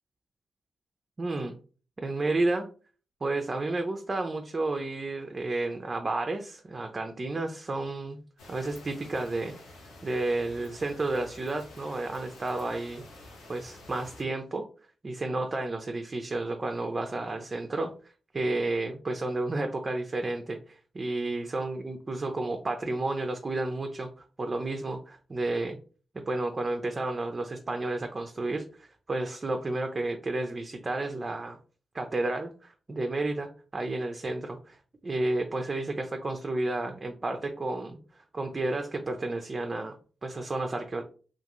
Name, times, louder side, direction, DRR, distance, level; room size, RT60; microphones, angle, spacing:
voice 1, 1.2-1.5 2.0-2.7 3.2-8.2 8.5-9.6 10.0-13.0 13.5-14.6 15.0-25.8 26.1-31.6 31.9-34.8 35.0-41.0, right 2 dB, 40° right, 4 dB, 0.4 m, -31 dB
sound 1, 8.4-14.2, left 2 dB, 90° left, 0.7 m, -49 dB
2.4 x 2.3 x 2.9 m, 0.39 s
supercardioid pair, 45°, 0 cm